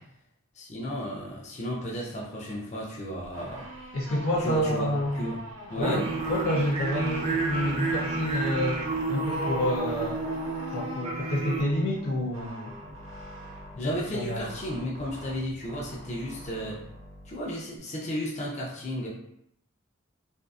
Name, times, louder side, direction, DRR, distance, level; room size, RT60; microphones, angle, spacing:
voice 1, 0.5-3.7 4.4-4.9 5.1-5.4 5.7-6.1 13.8-16.8 17.2-19.1, equal, 35° left, -4 dB, 0.5 m, -33 dB
sound 1, 3.3-17.8, right 1 dB, 65° right, 0.9 m, -43 dB
voice 2, 3.9-5.2 5.8-8.8 9.1-10.2 10.7-12.7 13.7-14.5, equal, 85° left, -5 dB, 0.5 m, -28 dB
sound 2, 5.8-11.6, right 3 dB, 30° right, 0.4 m, -31 dB
2.6 x 2.4 x 2.3 m, 0.73 s
head